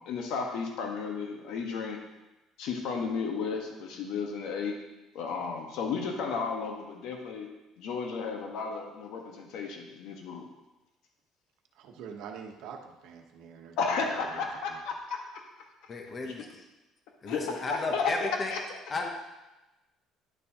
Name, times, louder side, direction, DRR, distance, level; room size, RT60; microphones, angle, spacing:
voice 1, 0.0-2.0 2.6-4.8 5.1-7.5 7.8-10.5 13.8-15.4 15.8-15.9 17.2-18.6, left 5 dB, 65° left, 2 dB, 1.2 m, -33 dB
voice 2, 11.7-14.8, right 7 dB, 65° right, 3 dB, 1.0 m, -45 dB
voice 3, 15.9-16.4 17.2-18.5 18.9-19.1, left 3 dB, 25° left, 3 dB, 0.7 m, -33 dB
10.5 x 6.9 x 2.9 m, 1.0 s
cardioid pair, 170°, 0 cm